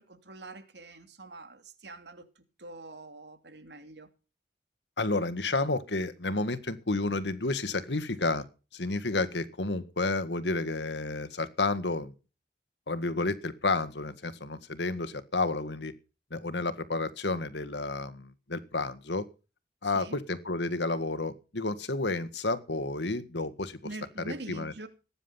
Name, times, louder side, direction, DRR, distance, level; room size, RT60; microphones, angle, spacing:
voice 1, 0.0-2.2 2.6-4.1 19.8-20.2 23.8-24.9, right 2 dB, 85° right, 2.6 m, -44 dB
voice 2, 5.0-8.5 8.7-12.1 12.9-15.9 16.3-19.3 19.8-23.8 24.2-24.7, left 2 dB, 85° left, 1.8 m, -31 dB
18.5 x 10.0 x 5.7 m
head